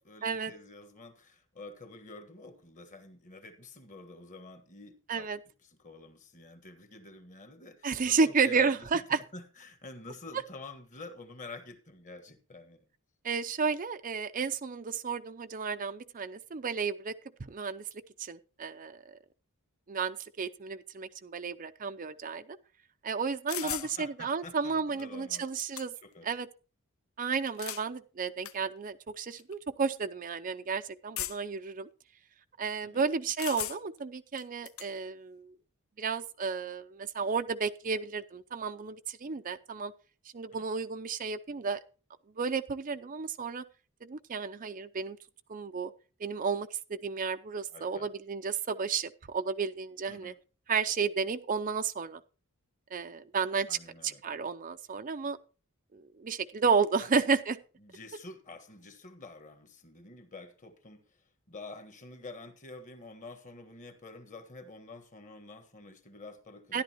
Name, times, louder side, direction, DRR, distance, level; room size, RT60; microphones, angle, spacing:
voice 1, 0.0-5.3 5.6-12.8 23.6-25.5 26.0-26.3 32.8-33.0 40.5-40.7 47.7-48.1 50.1-50.3 53.7-54.2 57.0-57.1 57.8-66.8, left 3 dB, 35° left, 1.5 m, -48 dB
voice 2, 5.1-5.4 7.8-9.2 13.2-17.1 17.4-17.8 18.2-19.2 19.9-22.6 23.0-25.9 26.2-26.5 27.2-31.9 32.6-35.5 36.0-39.9 40.3-41.8 42.4-43.6 44.0-45.2 45.5-45.9 46.2-50.3 50.7-52.2 52.9-53.8 54.0-55.4 55.9-57.6 66.7-66.8, right 5 dB, 40° right, 0.5 m, -32 dB
sound 1, 23.5-23.9 25.0-25.1 25.3-26.1 27.3-27.9 28.4-28.6 29.4-29.5 31.2-31.6 33.4-34.0 34.4-34.9, left 13 dB, 65° left, 0.7 m, -38 dB
13.5 x 11.0 x 3.0 m
head